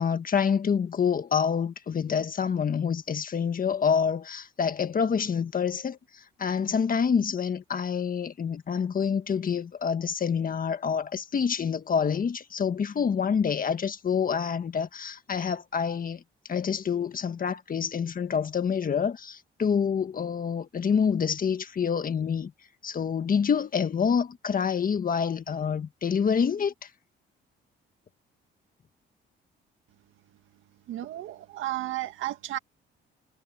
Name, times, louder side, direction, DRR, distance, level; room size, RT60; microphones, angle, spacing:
voice 1, 0.0-16.2 16.5-22.5 22.8-26.9, left 6 dB, 45° left, 1.7 m, -27 dB
voice 2, 30.9-32.6, right 14 dB, 85° right, 2.0 m, -33 dB
cardioid pair, 90°, 20 cm